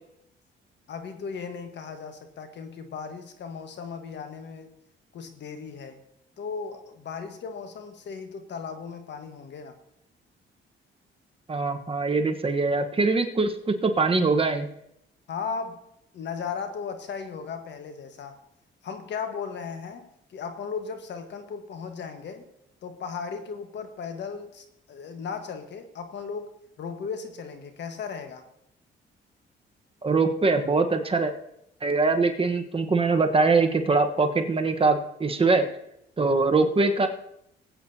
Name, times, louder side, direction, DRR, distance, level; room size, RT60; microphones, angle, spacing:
voice 1, 0.9-4.7 5.1-6.0 6.4-9.8 15.3-15.8 16.1-18.4 18.8-22.5 22.8-26.5 26.8-28.4, left 5 dB, 65° left, 7 dB, 1.4 m, -36 dB
voice 2, 11.5-14.7 30.0-31.3 31.8-35.7 36.2-37.1, right 3 dB, 30° right, 5 dB, 1.2 m, -23 dB
19.5 x 8.7 x 2.8 m, 0.77 s
cardioid pair, 90°, 20 cm